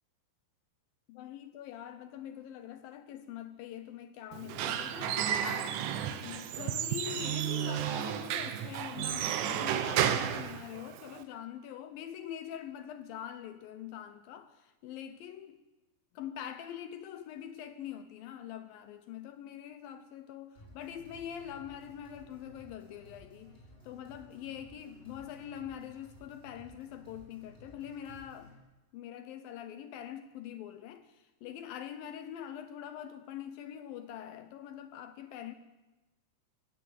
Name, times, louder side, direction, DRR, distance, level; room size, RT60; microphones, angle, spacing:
voice 1, 1.1-15.6 16.1-23.6 23.8-28.6 28.9-35.5, left 10 dB, 75° left, 2.2 m, -44 dB
Squeak / Wood, 4.3-11.2, right 10 dB, 70° right, 2.1 m, -32 dB
sound 1, 20.5-28.5, equal, 15° left, 6.7 m, -56 dB
18.5 x 15.5 x 9.3 m
omnidirectional pair, 4.8 m